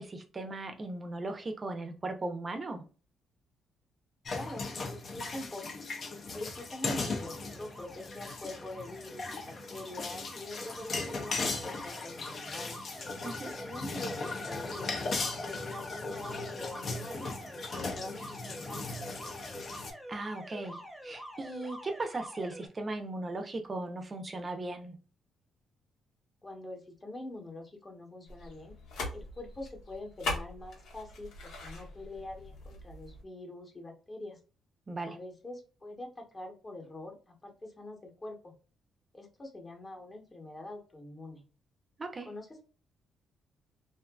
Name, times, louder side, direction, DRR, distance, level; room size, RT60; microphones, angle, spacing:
voice 1, 0.0-2.8 13.2-13.6 20.1-25.0 34.9-35.2 42.0-42.3, right 2 dB, 30° right, 0.5 m, -37 dB
sound 1, 4.3-19.9, left 3 dB, 50° left, 0.5 m, -38 dB
voice 2, 4.3-5.8 6.3-12.8 13.6-19.0 26.4-28.7 29.1-34.4 35.1-38.5 39.1-41.4 42.3-42.6, left 1 dB, 25° left, 0.9 m, -45 dB
Alarm, 7.0-22.7, equal, 5° right, 0.8 m, -47 dB
sound 2, 28.3-33.2, left 2 dB, 80° left, 0.9 m, -41 dB
2.6 x 2.4 x 2.2 m
cardioid pair, 90°, 0 cm